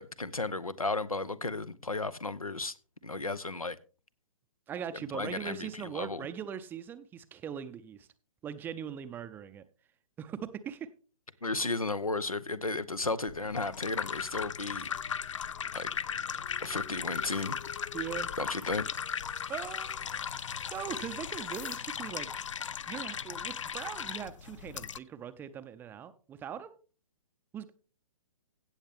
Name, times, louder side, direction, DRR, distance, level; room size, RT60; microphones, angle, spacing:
voice 1, 0.0-2.7 3.0-3.8 5.1-6.2 11.4-14.9 15.7-15.9 16.6-17.6 18.4-18.8, left 3 dB, 90° left, 0.8 m, -34 dB
voice 2, 4.7-8.1 8.4-9.7 10.2-10.9 17.9-18.3 19.5-20.0 20.7-22.3 22.9-26.8 27.5-27.7, right 8 dB, 10° right, 0.5 m, -40 dB
sound 1, 13.0-21.8, left 9 dB, 40° left, 1.0 m, -52 dB
sound 2, 13.3-25.0, left 7 dB, 60° left, 0.5 m, -37 dB
16.0 x 7.2 x 3.5 m
figure-of-eight pair, 125°, 18 cm